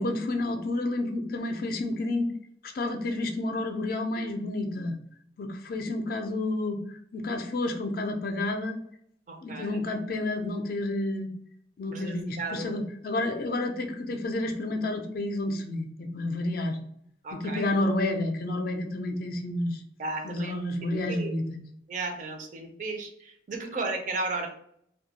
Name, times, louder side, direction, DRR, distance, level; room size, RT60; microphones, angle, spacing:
voice 1, 0.0-2.3 2.6-5.0 5.4-8.8 9.4-11.3 11.8-16.8 17.3-19.8 20.2-21.6, left 2 dB, 50° left, 5 dB, 0.4 m, -30 dB
voice 2, 9.3-9.8 11.9-12.7 17.2-17.7 20.0-21.3 21.9-24.5, right 3 dB, 45° right, 3 dB, 0.4 m, -35 dB
2.2 x 2.1 x 2.8 m, 0.67 s
head